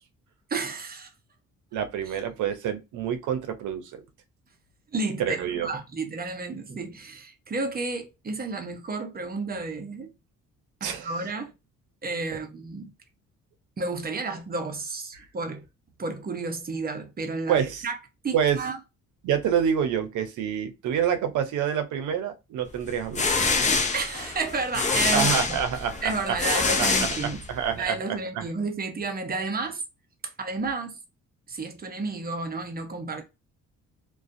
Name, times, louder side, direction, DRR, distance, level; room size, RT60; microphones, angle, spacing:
voice 1, 0.5-1.1 4.9-10.1 10.8-11.5 12.0-12.9 13.8-15.6 16.0-18.0 18.2-18.8 23.9-25.6 26.0-27.4 27.8-29.8 30.4-31.0 31.5-33.2, right 3 dB, 30° right, 0.7 m, -31 dB
voice 2, 1.7-4.0 5.2-5.7 10.8-11.2 15.1-15.2 17.5-17.8 18.3-18.6 19.2-23.3 25.1-26.4 26.8-28.5, right 8 dB, 80° right, 0.6 m, -27 dB
sound 1, 22.9-27.8, left 4 dB, 25° left, 0.5 m, -26 dB
2.5 x 2.2 x 2.5 m
cardioid pair, 90°, 30 cm